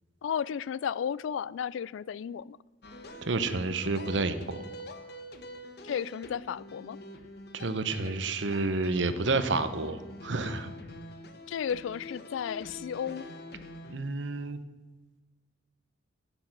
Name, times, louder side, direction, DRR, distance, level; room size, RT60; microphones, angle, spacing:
voice 1, 0.2-2.6 5.8-7.0 11.5-13.3, left 8 dB, 80° left, 22 dB, 0.3 m, -33 dB
sound 1, 2.8-14.0, left 1 dB, 55° left, 1.0 m, -45 dB
voice 2, 3.2-4.6 7.5-10.7 13.9-14.6, right 3 dB, 70° right, 11 dB, 0.9 m, -30 dB
11.5 x 9.0 x 6.0 m, 1.2 s
head